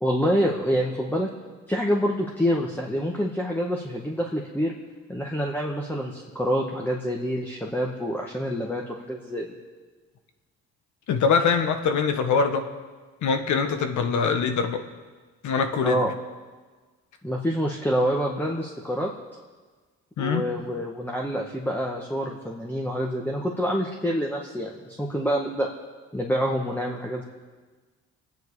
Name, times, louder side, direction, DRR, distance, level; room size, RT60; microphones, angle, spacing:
voice 1, 0.0-1.3 1.7-4.8 5.1-9.5 15.8-16.1 17.2-19.1 20.2-25.7 26.1-27.2, equal, 5° left, -1 dB, 1.8 m, -27 dB
voice 2, 11.1-12.6 13.2-14.8 15.4-16.0 20.2-20.5, left 5 dB, 75° left, 7 dB, 1.6 m, -23 dB
25.5 x 9.5 x 5.0 m, 1.4 s
cardioid pair, 90°, 30 cm